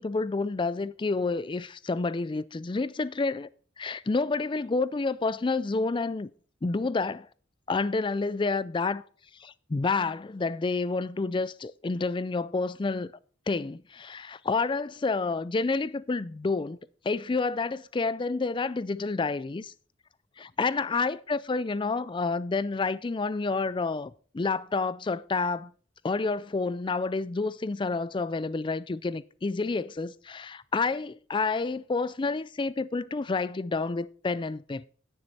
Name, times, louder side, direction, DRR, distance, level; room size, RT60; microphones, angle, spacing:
voice 1, 0.0-3.5 3.8-6.3 6.6-7.3 7.7-9.0 9.4-13.1 13.5-16.8 17.0-19.7 20.4-25.7 26.0-34.9, left 3 dB, 25° left, 0.4 m, -29 dB
9.9 x 9.9 x 4.2 m
head